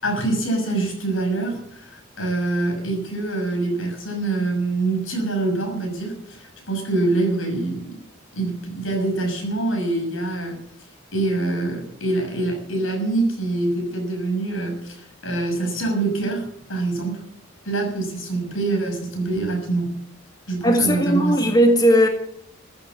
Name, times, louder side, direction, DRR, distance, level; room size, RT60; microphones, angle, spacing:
voice 1, 0.0-7.9 8.3-10.6 11.1-17.3 17.6-19.9 20.5-21.4, right 2 dB, 85° left, 6.2 m, -25 dB
voice 2, 20.6-22.1, equal, 20° left, 1.9 m, -17 dB
15.0 x 9.1 x 8.4 m
head